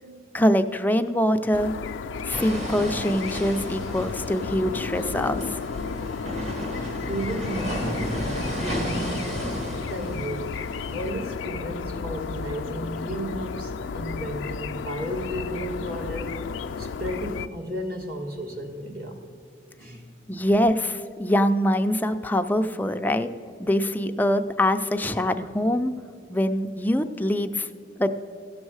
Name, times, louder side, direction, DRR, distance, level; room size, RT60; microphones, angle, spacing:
voice 1, 0.3-1.7 2.2-5.6 20.3-23.3 23.6-25.9 26.3-27.7 28.0-28.1, left 1 dB, 10° left, 7 dB, 0.4 m, -24 dB
sound 1, 1.5-17.5, left 5 dB, 85° left, 0.4 m, -33 dB
sound 2, 2.3-11.1, equal, 35° right, 1.5 m, -33 dB
voice 2, 6.7-8.2 8.4-9.3 9.8-10.6 10.9-16.3 16.8-19.2 19.8-20.0, equal, 50° right, 2 dB, 1.6 m, -33 dB
15.5 x 6.3 x 4.7 m, 2.4 s
head